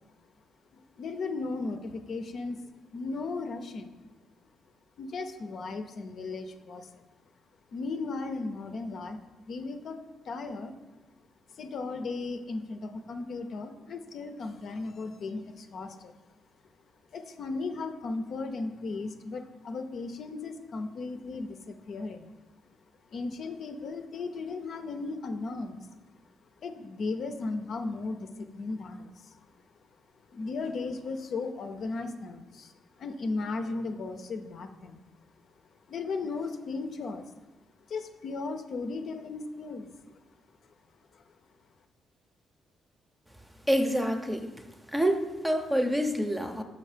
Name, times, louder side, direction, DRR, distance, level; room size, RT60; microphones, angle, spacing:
voice 1, 0.7-2.6 2.9-3.9 5.0-6.9 7.7-9.2 9.5-10.0 10.3-10.7 11.6-16.1 17.1-22.3 23.1-25.8 26.6-29.3 30.3-32.7 33.0-35.0 35.9-37.2 37.9-39.9, left 3 dB, 60° left, 6 dB, 0.6 m, -36 dB
voice 2, 43.7-44.5 44.9-46.6, equal, 10° right, 6 dB, 0.7 m, -27 dB
6.4 x 5.4 x 5.0 m, 1.2 s
cardioid pair, 90°, 0 cm